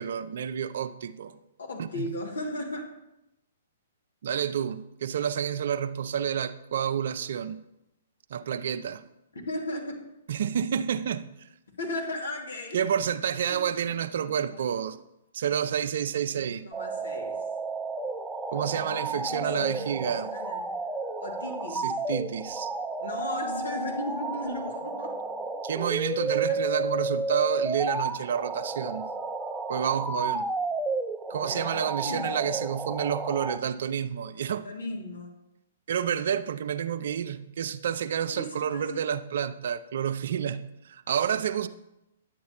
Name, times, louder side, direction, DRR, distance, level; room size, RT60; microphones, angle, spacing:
voice 1, 0.0-1.3 1.8-2.1 4.2-7.6 8.3-9.0 10.3-11.5 12.7-15.0 15.3-16.6 18.5-20.3 21.7-22.7 25.6-29.0 29.7-30.5 31.3-34.7 35.9-41.7, right 8 dB, 65° right, 0.5 m, -29 dB
voice 2, 1.6-2.9 9.3-10.1 11.8-12.8 13.5-13.9 14.4-14.8 16.3-17.4 19.3-20.7 21.2-22.0 23.0-25.1 26.3-26.6 31.3-32.5 34.6-35.3 38.3-39.0, left 1 dB, 80° left, 2.2 m, -36 dB
sound 1, 16.7-33.6, right 3 dB, 5° right, 0.5 m, -32 dB
10.5 x 8.2 x 2.9 m
hypercardioid pair, 125°, 0 cm